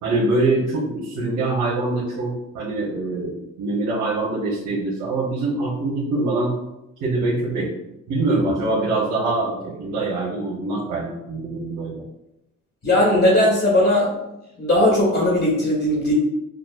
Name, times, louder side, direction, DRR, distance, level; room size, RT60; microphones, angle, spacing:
voice 1, 0.0-6.6 7.0-7.7 8.1-12.0, right 2 dB, 90° right, -7 dB, 1.1 m, -24 dB
voice 2, 12.8-14.2 14.6-16.1, left 1 dB, 40° left, -4 dB, 1.5 m, -18 dB
6.2 x 2.4 x 2.4 m, 0.89 s
cardioid pair, 90°, 30 cm